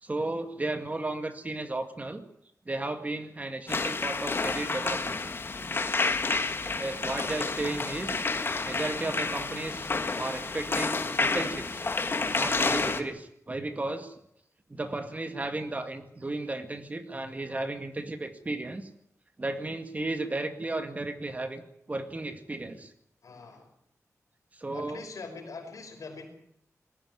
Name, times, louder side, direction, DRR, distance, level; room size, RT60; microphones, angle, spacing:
voice 1, 0.0-2.2 2.7-5.2 6.6-8.2 8.6-9.9 10.2-11.9 12.3-14.1 14.7-18.9 19.4-21.6 21.9-22.9 24.6-25.0, right 2 dB, 25° right, 7 dB, 2.0 m, -34 dB
sound 1, 3.7-13.0, left 3 dB, 40° left, 1.6 m, -30 dB
voice 2, 23.2-23.7 24.7-26.3, left 4 dB, 80° left, 4 dB, 5.6 m, -43 dB
21.0 x 15.0 x 9.6 m, 0.74 s
wide cardioid pair, 140°, 6 cm